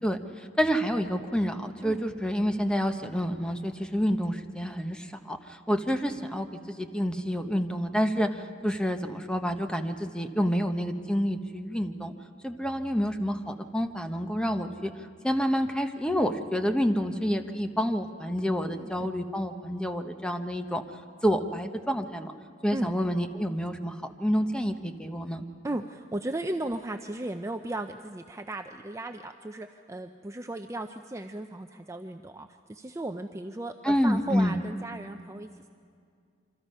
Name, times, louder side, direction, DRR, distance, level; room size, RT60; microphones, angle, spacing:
voice 1, 0.0-12.1 12.4-14.9 15.2-20.8 21.2-22.3 22.6-25.4 33.8-34.6, equal, 5° left, 7 dB, 0.9 m, -28 dB
voice 2, 18.7-19.1 22.7-22.9 25.6-35.7, right 1 dB, 15° right, 6 dB, 0.5 m, -36 dB
26.5 x 25.0 x 5.5 m, 2.3 s
head